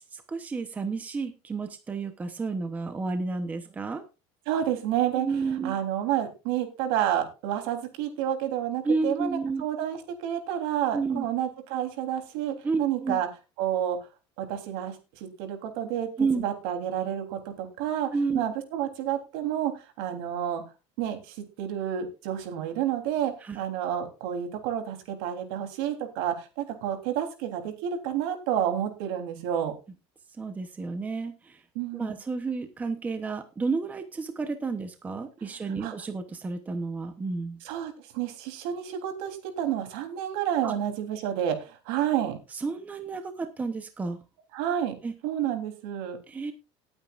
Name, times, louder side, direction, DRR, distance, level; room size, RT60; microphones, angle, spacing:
voice 1, 0.1-4.0 5.2-5.7 8.8-9.6 10.9-11.2 12.6-13.2 16.2-16.4 18.1-18.5 23.4-23.6 30.4-31.6 31.9-37.6 40.6-40.7 42.5-44.2 45.0-45.1 46.3-46.5, right 4 dB, 10° right, 7 dB, 0.9 m, -31 dB
voice 2, 4.4-13.3 13.6-14.0 14.4-20.6 21.0-29.7 31.7-32.2 35.4-35.9 37.6-42.4 44.5-44.9 45.2-46.2, right 10 dB, 70° right, 5 dB, 3.4 m, -30 dB
19.5 x 8.8 x 2.5 m, 0.29 s
cardioid pair, 180°, 13 cm